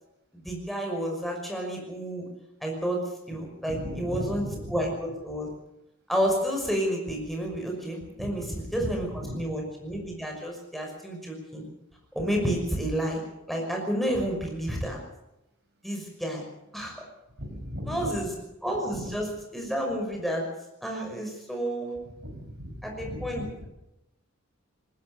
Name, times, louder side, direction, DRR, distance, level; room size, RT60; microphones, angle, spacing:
voice 1, 0.4-2.2 2.6-3.0 3.3-4.4 4.7-5.5 6.1-11.6 12.1-13.2 13.5-15.0 15.8-16.4 16.7-16.9 17.8-18.3 18.6-19.3 19.5-20.5 20.8-21.9 22.8-23.7, equal, ahead, 0 dB, 5.9 m, -30 dB
voice 2, 3.7-4.8 8.2-8.5 9.1-9.4 17.4-18.2 18.9-19.1 22.2-23.7, equal, 50° right, 3 dB, 6.0 m, -37 dB
20.5 x 19.0 x 6.9 m, 0.91 s
head